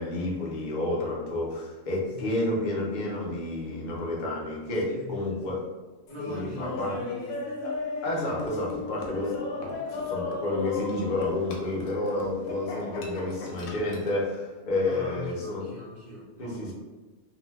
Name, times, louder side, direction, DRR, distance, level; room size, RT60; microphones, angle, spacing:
voice 1, 0.0-5.6 6.3-6.9 7.6-7.7 8.0-9.7 10.1-15.7 16.4-16.7, left 2 dB, 45° left, -4 dB, 0.7 m, -30 dB
voice 2, 4.8-5.5 6.1-7.4 14.8-16.7, left 2 dB, 50° right, -10 dB, 0.8 m, -41 dB
Laughter, 6.1-14.2, left 3 dB, 75° left, 1.0 m, -35 dB
2.7 x 2.2 x 3.2 m, 1.2 s
omnidirectional pair, 1.4 m